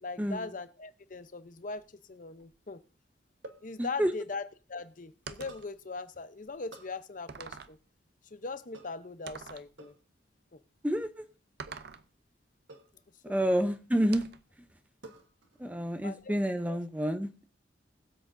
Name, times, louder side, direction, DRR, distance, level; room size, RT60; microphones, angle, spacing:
voice 1, 0.0-2.8 3.6-7.8 8.3-9.9 10.5-10.6 13.3-13.6 16.0-16.2 16.7-16.8, left 4 dB, 45° left, 12 dB, 0.7 m, -40 dB
sound 1, 1.7-2.6 3.4-3.7 5.5-5.8 6.7-7.0 8.7-9.1 9.8-10.1 11.7-11.9 12.7-13.0 13.7-14.2 15.0-15.7 15.9-16.3, right 2 dB, 80° right, 1.4 m, -52 dB
voice 2, 3.8-4.1 10.8-11.1 13.2-14.2 15.6-17.5, equal, 10° right, 8 dB, 0.6 m, -29 dB
sound 2, 5.3-5.7 6.5-6.6 7.3-7.8 9.3-9.7 11.6-12.1 14.1-14.5, right 5 dB, 55° right, 0.6 m, -44 dB
21.0 x 7.6 x 2.6 m, 0.33 s
head